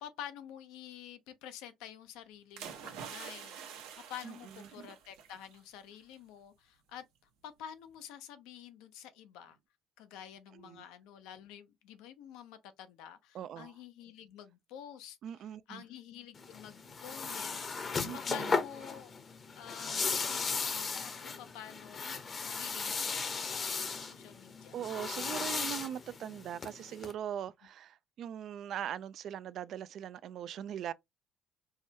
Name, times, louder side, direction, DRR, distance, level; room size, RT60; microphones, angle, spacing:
voice 1, 0.0-3.8 4.1-7.0 7.4-9.6 10.0-15.2 15.7-17.6 18.1-19.1 19.6-24.8, left 10 dB, 80° left, 0.6 m, -49 dB
sound 1, 2.6-5.6 5.9-6.1, right 8 dB, 85° right, 1.0 m, -47 dB
voice 2, 4.2-4.9 10.5-10.9 13.3-13.8 15.2-15.8 18.0-18.6 24.7-30.9, right 10 dB, 60° right, 0.3 m, -41 dB
sound 2, 16.3-27.1, left 4 dB, 35° left, 0.7 m, -36 dB
4.6 x 2.2 x 2.8 m
supercardioid pair, 90°, 0 cm